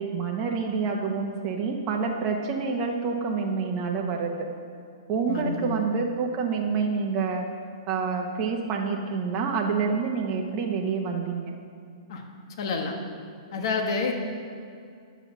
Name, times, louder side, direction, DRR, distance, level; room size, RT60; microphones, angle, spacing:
voice 1, 0.0-4.5 5.1-7.5 7.9-11.5, right 5 dB, 35° right, 1 dB, 0.9 m, -27 dB
voice 2, 5.3-5.7 12.1-12.2 12.6-12.9 13.5-14.1, left 4 dB, 60° left, 3 dB, 1.4 m, -28 dB
9.9 x 7.0 x 5.9 m, 2.4 s
hypercardioid pair, 120°, 3 cm